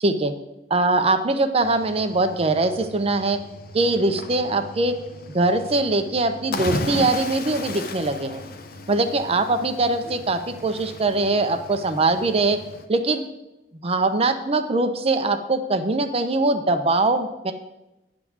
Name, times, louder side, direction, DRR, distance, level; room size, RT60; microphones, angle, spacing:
voice 1, 0.0-0.3 0.7-3.4 3.7-5.0 5.3-8.4 8.9-12.6 12.9-13.2 13.8-17.5, right 2 dB, 35° right, 7 dB, 0.7 m, -22 dB
Cricket / Waves surf, 1.6-12.9, left 2 dB, 55° left, 0.7 m, -36 dB
9.8 x 3.8 x 7.2 m, 0.97 s
head